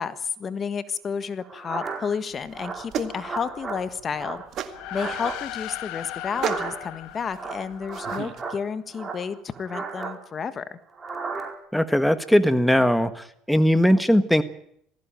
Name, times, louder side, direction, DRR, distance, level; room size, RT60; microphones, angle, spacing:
voice 1, 0.0-10.8, left 6 dB, 35° left, 13 dB, 1.5 m, -31 dB
sound 1, 1.4-2.2 2.5-3.8 4.1-5.4 6.2-7.0 7.3-8.6 8.9-10.2 10.9-11.5, right 4 dB, 25° right, 4.7 m, -35 dB
sound 2, 2.3-8.4, right 10 dB, 55° right, 2.1 m, -36 dB
sound 3, 4.6-8.3, left 14 dB, 70° left, 1.5 m, -37 dB
voice 2, 11.7-14.4, equal, 5° left, 11 dB, 1.4 m, -19 dB
19.5 x 15.5 x 9.1 m, 0.71 s
supercardioid pair, 100°, 0 cm